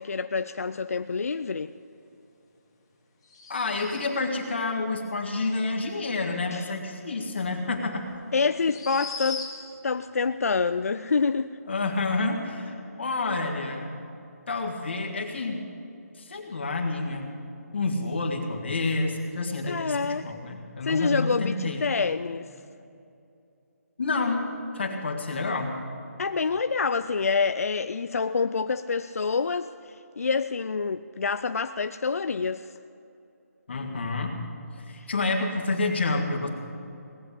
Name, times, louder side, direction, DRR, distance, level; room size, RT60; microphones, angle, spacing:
voice 1, 0.0-1.7 6.5-6.7 8.3-9.6 9.8-11.6 19.6-20.2 20.8-22.5 26.2-32.7 34.9-35.1, left 5 dB, 60° left, 11 dB, 0.4 m, -27 dB
sound 1, 3.2-4.3 7.4-7.5 8.6-9.8, left 4 dB, 20° left, 1.9 m, -38 dB
voice 2, 3.5-8.1 11.7-13.9 14.5-15.7 16.2-17.3 17.7-21.9 24.0-24.4 24.7-25.8 33.7-34.4 34.8-36.5, left 3 dB, 40° left, 1 dB, 1.8 m, -29 dB
18.5 x 7.7 x 9.9 m, 2.7 s
hypercardioid pair, 180°, 9 cm